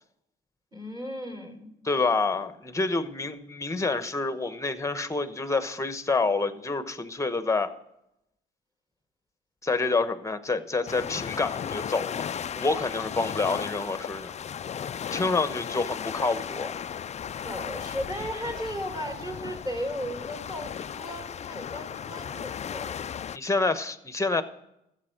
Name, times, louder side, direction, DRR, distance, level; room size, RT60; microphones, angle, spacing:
voice 1, 0.7-1.7 17.4-23.2, equal, 20° right, 3 dB, 4.1 m, -36 dB
voice 2, 1.8-7.7 9.6-14.3 15.1-16.7 23.3-24.4, left 3 dB, 15° left, 11 dB, 1.1 m, -28 dB
sound 1, 10.9-23.4, left 8 dB, 35° left, 0.4 m, -35 dB
13.5 x 8.2 x 6.5 m, 0.82 s
cardioid pair, 90°, 20 cm